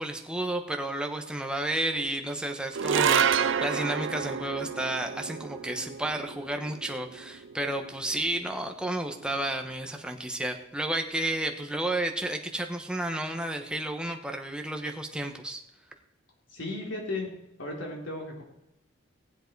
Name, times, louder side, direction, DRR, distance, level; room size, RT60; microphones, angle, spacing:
voice 1, 0.0-15.6, right 1 dB, 5° right, 4 dB, 1.1 m, -32 dB
sound 1, 2.7-9.2, right 7 dB, 75° right, 0.5 m, -30 dB
voice 2, 16.5-17.3 17.6-18.4, left 2 dB, 80° left, -1 dB, 3.8 m, -35 dB
18.0 x 7.8 x 4.6 m, 0.89 s
head